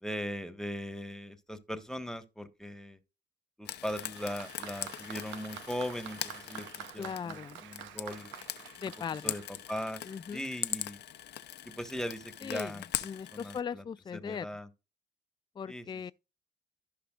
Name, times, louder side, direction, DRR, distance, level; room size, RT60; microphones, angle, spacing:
voice 1, 0.0-3.0 3.6-8.3 9.2-9.4 9.7-10.0 10.3-11.0 11.6-12.8 13.3-13.8 14.1-14.7 15.7-15.9, equal, 5° left, 1.5 m, -39 dB
Frying (food), 3.6-13.6, left 12 dB, 65° left, 0.8 m, -41 dB
Applause, 3.9-10.3, right 10 dB, 80° right, 0.9 m, -48 dB
voice 2, 7.0-7.6 8.8-9.3 10.0-10.4 12.4-14.5 15.6-16.1, left 7 dB, 25° left, 0.4 m, -39 dB
15.0 x 5.5 x 2.5 m
supercardioid pair, 60°, 19 cm